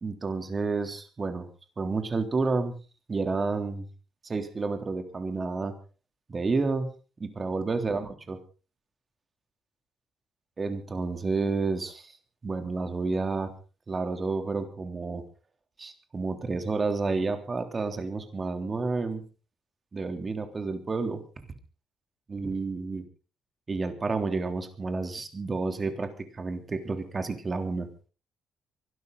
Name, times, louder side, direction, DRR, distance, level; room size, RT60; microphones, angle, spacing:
voice 1, 0.0-1.5 1.8-2.8 3.1-3.9 4.2-5.7 6.3-6.9 7.2-8.4 10.6-12.2 12.4-13.5 13.9-15.2 15.8-19.2 19.9-21.2 22.3-23.0 23.7-27.9, right 3 dB, 30° right, 7 dB, 3.5 m, -30 dB
24.0 x 13.0 x 4.1 m, 0.36 s
cardioid pair, 90°, 0 cm